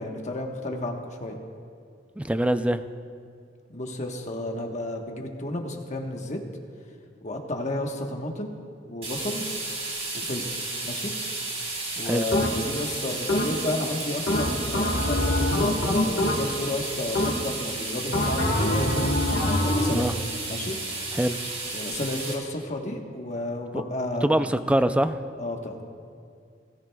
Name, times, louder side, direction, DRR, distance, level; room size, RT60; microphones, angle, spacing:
voice 1, 0.0-1.4 3.7-6.4 7.2-8.6 8.9-9.5 10.1-11.1 11.9-15.7 16.0-19.1 19.6-20.2 20.5-20.8 21.7-24.5 25.4-25.8, left 1 dB, 40° left, 2 dB, 1.2 m, -32 dB
voice 2, 2.2-2.8 12.0-12.3 19.9-20.1 21.1-21.4 23.7-23.8 24.2-25.2, right 1 dB, 5° right, 11 dB, 0.3 m, -23 dB
sound 1, 9.0-22.3, right 2 dB, 35° right, 3.1 m, -33 dB
sound 2, 12.3-12.8 13.3-13.8 14.3-16.7 17.2-17.7 18.1-20.1, left 1 dB, 80° left, 1.4 m, -25 dB
20.0 x 14.0 x 2.3 m, 2.3 s
head